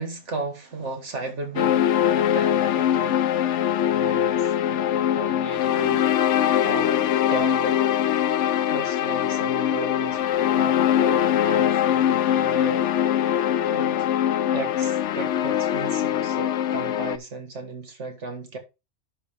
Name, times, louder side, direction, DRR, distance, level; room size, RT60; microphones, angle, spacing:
voice 1, 0.0-3.2 3.8-7.8 8.7-10.2 10.5-12.8 13.2-14.1 14.5-18.6, right 3 dB, 75° right, 2.0 m, -35 dB
sound 1, 1.6-17.2, left 10 dB, 80° left, 0.9 m, -22 dB
11.0 x 5.2 x 3.5 m
omnidirectional pair, 1.2 m